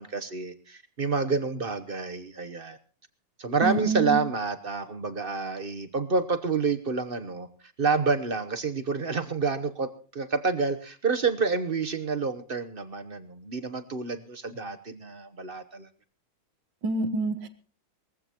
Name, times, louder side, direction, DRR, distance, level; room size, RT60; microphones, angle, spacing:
voice 1, 0.0-2.8 3.4-7.5 7.8-15.9, right 4 dB, 40° right, 10 dB, 0.8 m, -28 dB
voice 2, 3.6-4.2 16.8-17.5, right 3 dB, 65° right, 9 dB, 1.8 m, -27 dB
21.5 x 15.5 x 3.0 m, 0.39 s
omnidirectional pair, 2.2 m